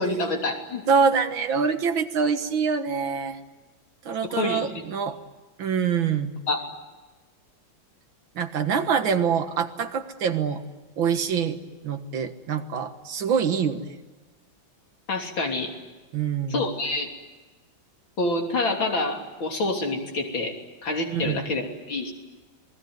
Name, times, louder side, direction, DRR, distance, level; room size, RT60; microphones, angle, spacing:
voice 1, 0.0-0.8 4.2-4.6 6.5-6.6 15.1-15.7 16.5-17.1 18.2-20.6 20.8-22.1, left 2 dB, 80° left, 2 dB, 4.0 m, -27 dB
voice 2, 0.9-3.4 4.1-5.2 5.6-6.3 8.4-10.6 11.0-11.6 11.8-14.0 16.1-16.7 21.1-21.5, right 6 dB, 75° right, 8 dB, 2.3 m, -25 dB
27.5 x 20.5 x 9.5 m, 1.2 s
omnidirectional pair, 2.1 m